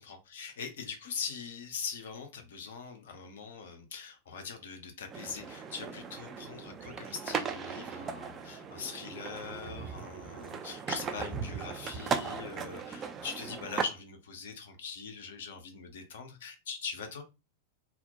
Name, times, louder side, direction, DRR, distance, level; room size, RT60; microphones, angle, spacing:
voice 1, 0.0-17.2, left 6 dB, 60° left, 5 dB, 0.5 m, -42 dB
sound 1, 5.1-13.8, right 6 dB, 25° right, 0.3 m, -38 dB
2.2 x 2.0 x 2.7 m, 0.27 s
figure-of-eight pair, 90°, 0 cm